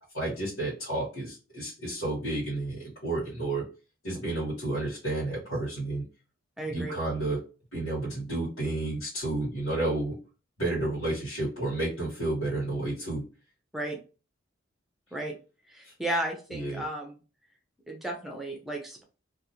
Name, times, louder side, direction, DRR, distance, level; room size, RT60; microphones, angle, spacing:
voice 1, 0.1-3.6 4.0-6.0 6.7-7.4 7.7-10.1 10.6-13.2 15.8-15.9 16.5-16.8, right 2 dB, 80° left, -9 dB, 1.3 m, -31 dB
voice 2, 6.6-7.0 13.7-14.0 15.1-15.3 15.7-17.2 17.9-19.0, right 1 dB, ahead, 1 dB, 0.4 m, -34 dB
2.4 x 2.3 x 2.8 m, 0.34 s
head